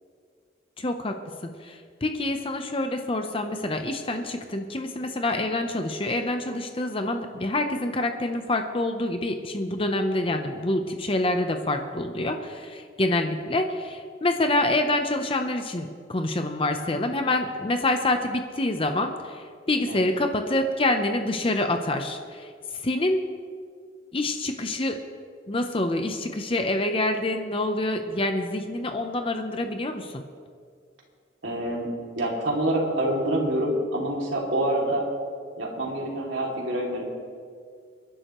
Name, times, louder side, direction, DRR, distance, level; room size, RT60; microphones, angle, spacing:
voice 1, 0.8-1.2 1.4-22.5 22.8-23.2 24.1-25.0 25.5-30.2, left 2 dB, 30° left, 6 dB, 0.7 m, -26 dB
voice 2, 31.4-31.9 32.2-35.0 35.6-37.1, right 1 dB, 80° right, -2 dB, 2.7 m, -26 dB
28.0 x 11.0 x 3.1 m, 2.1 s
head